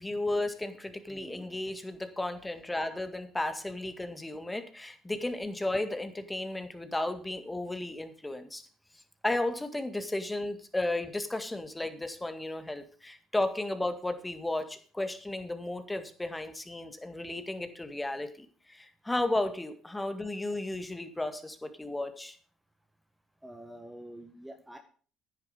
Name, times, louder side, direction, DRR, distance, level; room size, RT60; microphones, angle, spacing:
voice 1, 0.0-8.7 9.2-22.4, left 2 dB, 15° left, 8 dB, 1.9 m, -34 dB
voice 2, 1.1-1.5 23.4-24.8, right 1 dB, 5° right, 5 dB, 1.4 m, -47 dB
10.5 x 9.7 x 5.2 m, 0.42 s
hypercardioid pair, 60°, 0 cm